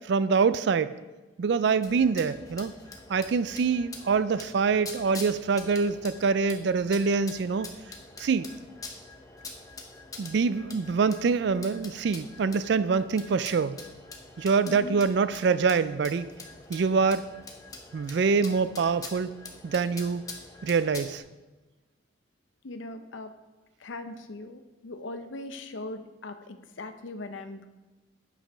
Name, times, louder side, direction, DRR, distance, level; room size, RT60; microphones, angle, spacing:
voice 1, 0.1-0.9 1.4-2.8 3.1-7.7 8.2-8.5 10.2-13.8 14.4-16.3 16.7-17.3 17.9-19.3 19.6-20.2 20.6-21.2, right 5 dB, 60° right, 15 dB, 0.3 m, -25 dB
sound 1, 1.8-21.2, left 3 dB, 20° left, 0.7 m, -45 dB
voice 2, 14.6-15.0 22.6-23.3 23.8-27.7, left 2 dB, 75° left, 9 dB, 0.6 m, -40 dB
8.4 x 5.4 x 4.9 m, 1.2 s
head